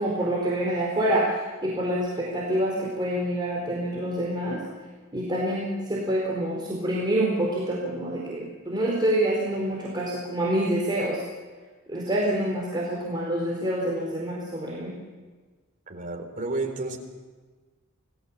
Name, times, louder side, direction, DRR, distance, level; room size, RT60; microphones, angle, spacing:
voice 1, 0.0-4.6 5.1-11.2 11.9-14.9, right 1 dB, 20° right, -4 dB, 4.4 m, -27 dB
voice 2, 15.9-17.0, right 2 dB, 40° right, 3 dB, 3.9 m, -31 dB
29.0 x 19.5 x 7.3 m, 1.4 s
head